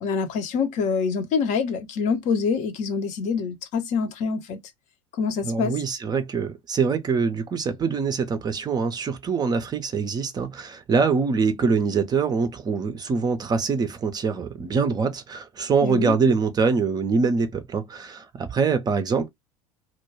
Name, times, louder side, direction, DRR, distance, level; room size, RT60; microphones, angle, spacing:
voice 1, 0.0-4.6 5.2-5.7 15.8-16.1, left 5 dB, 45° left, 0.6 m, -25 dB
voice 2, 5.4-19.3, right 5 dB, 25° right, 0.5 m, -24 dB
2.2 x 2.2 x 3.1 m
figure-of-eight pair, 70°, 18 cm